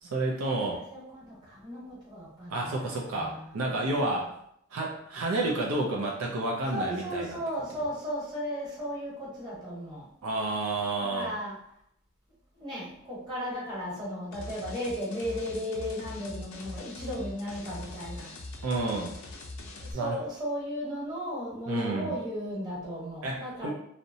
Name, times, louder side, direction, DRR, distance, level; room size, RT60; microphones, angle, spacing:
voice 1, 0.0-0.8 2.5-4.3 4.7-7.4 10.2-11.3 18.6-19.1 19.9-20.2 21.7-22.1 23.2-23.7, right 2 dB, 75° right, -1 dB, 0.5 m, -30 dB
voice 2, 0.9-4.3 6.7-10.1 11.1-11.6 12.5-18.3 19.8-23.7, equal, 20° right, -7 dB, 1.1 m, -35 dB
sound 1, 14.3-19.9, left 2 dB, 75° left, 0.5 m, -42 dB
2.7 x 2.1 x 2.6 m, 0.72 s
head